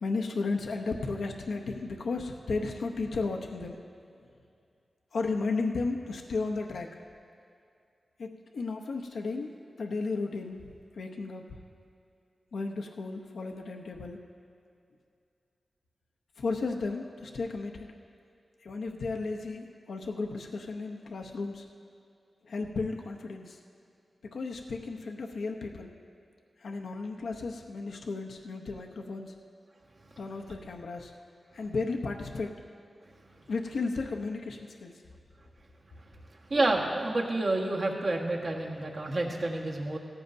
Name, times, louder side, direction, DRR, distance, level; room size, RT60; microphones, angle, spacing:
voice 1, 0.0-3.8 5.1-6.9 8.2-10.6 11.0-11.5 12.5-14.2 16.4-17.9 18.6-21.7 22.4-23.6 24.2-25.9 26.6-29.4 30.2-31.1 31.5-32.5 33.5-34.9, left 3 dB, 85° left, 2 dB, 0.7 m, -34 dB
voice 2, 36.5-40.0, right 2 dB, 55° right, -1 dB, 1.5 m, -29 dB
17.0 x 14.5 x 2.6 m, 2.5 s
cardioid pair, 65°, 0 cm